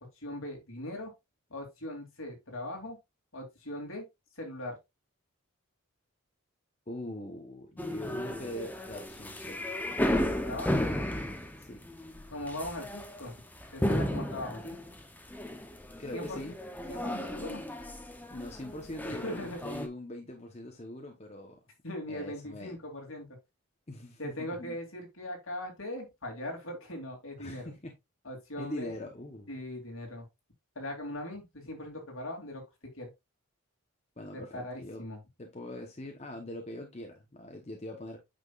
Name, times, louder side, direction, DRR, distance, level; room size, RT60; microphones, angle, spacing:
voice 1, 0.2-1.1 1.5-3.0 3.3-4.0 4.4-4.8 10.4-10.9 12.3-13.4 13.7-14.8 16.1-16.4 16.9-17.6 19.2-19.6 21.8-23.3 24.2-27.7 28.2-28.9 29.5-30.3 30.7-32.6 32.9-33.1 34.3-35.2, left 1 dB, 65° left, 3.0 m, -40 dB
voice 2, 6.9-9.6 11.6-11.8 16.0-16.6 18.3-21.6 22.1-22.7 23.9-24.8 27.4-28.0 28.6-29.6 34.2-35.0 35.4-38.2, left 1 dB, 30° left, 1.0 m, -42 dB
sound 1, 7.8-19.9, left 1 dB, 10° left, 0.8 m, -34 dB
8.8 x 5.9 x 2.4 m
head